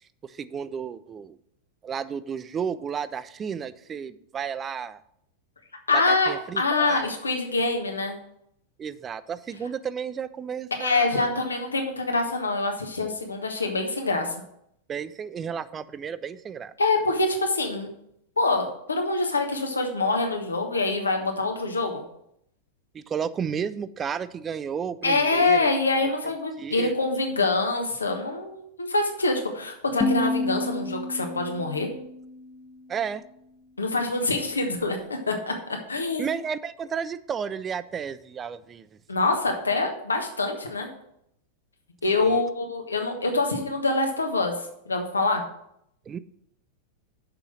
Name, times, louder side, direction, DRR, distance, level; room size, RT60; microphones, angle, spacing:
voice 1, 0.2-1.4 1.8-5.0 5.9-7.1 8.8-11.4 14.9-16.7 22.9-25.7 26.2-26.3 26.6-26.9 32.9-33.2 36.2-39.0 42.2-42.4 46.1-46.2, right 7 dB, 25° right, 15 dB, 0.4 m, -32 dB
voice 2, 5.9-8.2 10.8-14.3 16.8-17.9 18.4-22.0 25.0-31.9 33.8-35.0 35.3-35.5 35.9-36.3 39.1-40.9 42.0-44.5 44.9-45.4, left 3 dB, 75° left, 3 dB, 1.3 m, -25 dB
sound 1, 30.0-33.0, left 2 dB, 25° left, 0.9 m, -30 dB
6.7 x 5.6 x 6.1 m, 0.75 s
figure-of-eight pair, 90°, 0 cm